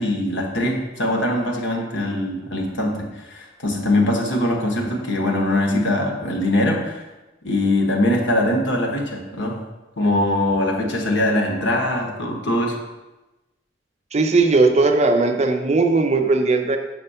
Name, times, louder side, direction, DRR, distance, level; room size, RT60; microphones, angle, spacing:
voice 1, 0.0-7.0 7.4-9.6 10.0-12.8, left 1 dB, 70° left, 1 dB, 1.3 m, -22 dB
voice 2, 14.1-16.8, right 3 dB, 35° right, 5 dB, 0.5 m, -18 dB
6.3 x 4.3 x 5.6 m, 1.1 s
head